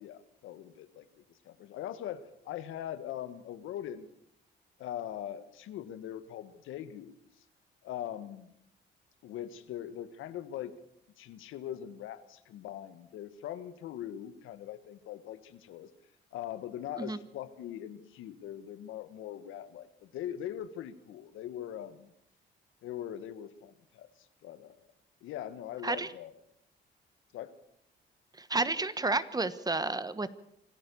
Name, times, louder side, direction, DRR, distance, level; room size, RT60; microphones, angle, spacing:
voice 1, 0.0-4.1 4.8-7.4 7.8-8.5 9.2-10.7 11.2-15.9 16.3-22.1 22.8-24.8 25.2-26.3 27.3-27.5, left 11 dB, 90° left, 12 dB, 1.5 m, -41 dB
voice 2, 28.4-30.3, right 3 dB, 20° right, 14 dB, 1.3 m, -31 dB
26.5 x 14.0 x 7.0 m, 0.73 s
cardioid pair, 90°, 20 cm